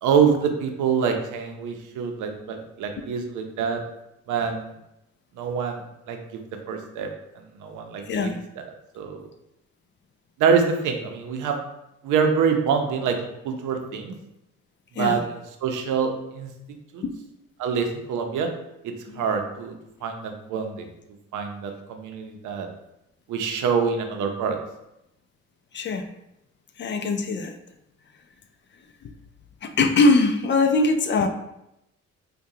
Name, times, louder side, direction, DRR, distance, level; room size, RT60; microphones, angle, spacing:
voice 1, 0.0-3.8 4.3-4.7 5.4-5.8 6.1-6.4 6.7-7.1 7.4-8.6 8.9-9.3 10.4-11.6 12.0-14.1 15.0-16.5 16.9-17.0 17.6-18.5 18.8-19.7 20.0-20.9 21.3-22.7 23.3-24.6, right 6 dB, 80° right, 4 dB, 0.6 m, -25 dB
voice 2, 8.1-8.4 15.0-15.2 17.0-17.1 19.1-19.2 25.7-26.0 26.8-27.5 29.0-29.1 29.6-31.3, left 3 dB, 40° left, 7 dB, 0.4 m, -21 dB
4.7 x 2.2 x 2.7 m, 0.86 s
cardioid pair, 90°, 30 cm